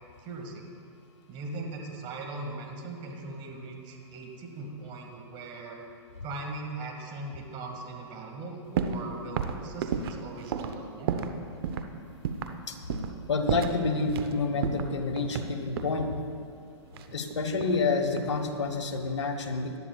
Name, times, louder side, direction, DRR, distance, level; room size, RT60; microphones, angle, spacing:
voice 1, 0.2-0.7 1.3-5.8 6.2-11.2, right 2 dB, 35° right, 1 dB, 2.0 m, -39 dB
sound 1, 8.8-9.1 9.4-11.4 11.6-11.9 12.2-12.6 12.9-13.2 13.5-14.3 14.6-16.0 16.9-17.8 18.1-18.6, right 7 dB, 55° right, 0.8 m, -32 dB
voice 2, 13.3-16.2 17.1-19.8, left 3 dB, 90° left, 4 dB, 1.3 m, -28 dB
18.0 x 12.0 x 2.4 m, 2.4 s
hypercardioid pair, 130°, 15 cm